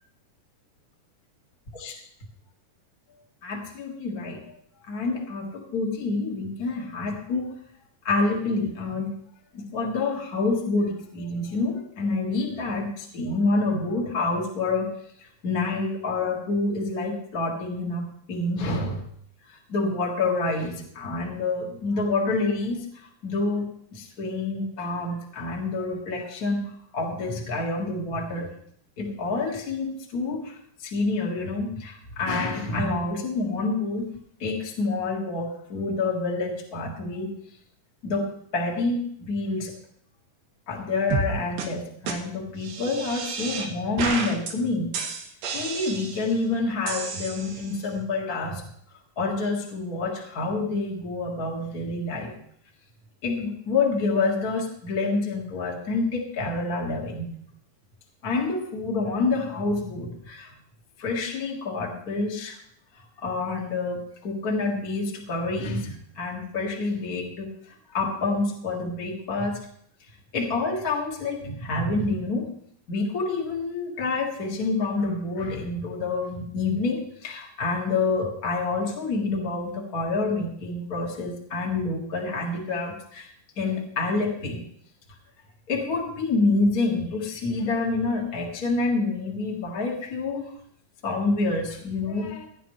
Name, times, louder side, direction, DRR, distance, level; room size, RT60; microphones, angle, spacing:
voice 1, 3.4-4.6 4.9-7.6 8.0-9.1 9.5-14.9 15.2-19.0 19.4-23.6 23.9-28.5 29.0-34.1 34.4-37.3 38.0-39.7 40.7-44.9 45.5-48.6 49.2-52.3 53.2-57.3 58.2-60.5 61.0-62.6 63.0-69.7 70.3-72.5 72.9-83.3 83.6-84.6 85.7-90.5 91.0-92.5, left 3 dB, 40° left, -1 dB, 1.5 m, -28 dB
sound 1, 41.1-41.3 41.6-41.7 42.1-42.2 42.6-43.7 44.0-44.5 44.9-46.3 46.9-47.8, right 4 dB, 80° right, 3.2 m, -31 dB
17.0 x 10.0 x 3.2 m, 0.67 s
omnidirectional pair, 3.8 m